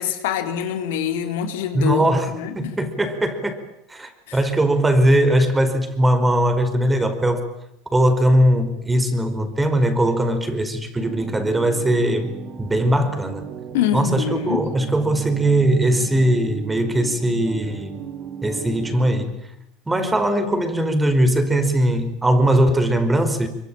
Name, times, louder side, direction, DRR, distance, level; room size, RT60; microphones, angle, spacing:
voice 1, 0.0-2.7 4.3-4.4 13.7-14.6, left 9 dB, 80° left, 6 dB, 3.9 m, -25 dB
voice 2, 1.7-3.6 3.9-7.4 7.9-12.3 12.6-13.4 13.9-18.0 18.4-19.3 19.9-23.5, right 1 dB, 15° right, 9 dB, 5.0 m, -20 dB
sound 1, 10.9-19.3, right 7 dB, 50° right, 3.5 m, -35 dB
24.0 x 24.0 x 9.0 m, 0.82 s
supercardioid pair, 95°, 0 cm